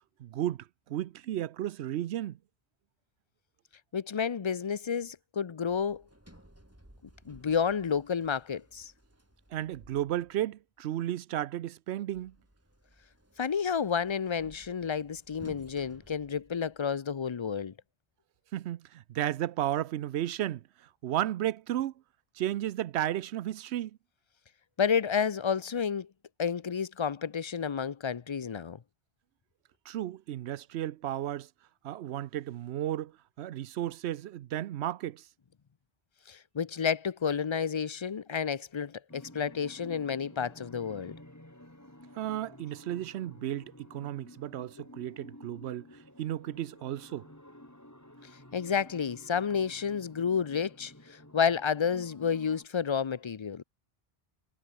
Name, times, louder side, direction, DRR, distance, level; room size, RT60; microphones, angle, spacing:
voice 1, 0.2-2.4 9.5-12.3 18.5-20.6 21.0-21.9 22.4-23.9 29.9-31.5 31.8-33.1 33.4-35.2 42.2-45.9 46.2-47.3, right 12 dB, 85° right, 0.9 m, -33 dB
voice 2, 3.9-6.0 7.3-8.9 13.4-17.7 24.8-26.1 26.4-28.8 36.3-41.2 48.5-53.6, left 6 dB, 35° left, 0.5 m, -30 dB
Sliding door, 5.7-10.5 12.1-17.1, right 1 dB, 15° right, 3.8 m, -58 dB
sound 1, 39.1-52.7, left 1 dB, 15° left, 3.6 m, -52 dB
omnidirectional pair, 1.1 m